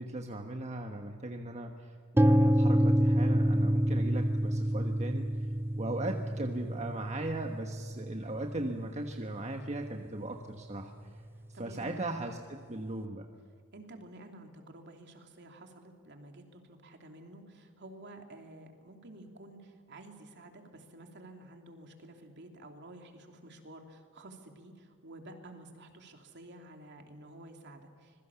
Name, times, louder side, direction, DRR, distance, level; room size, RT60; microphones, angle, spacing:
voice 1, 0.0-5.3 5.8-10.9 11.6-13.3, right 2 dB, 30° right, 3 dB, 1.3 m, -38 dB
sound 1, 2.2-10.1, equal, 10° right, 0.5 m, -28 dB
voice 2, 11.5-11.9 13.7-28.3, right 1 dB, 55° right, 4 dB, 3.0 m, -51 dB
26.0 x 22.0 x 7.1 m, 2.1 s
head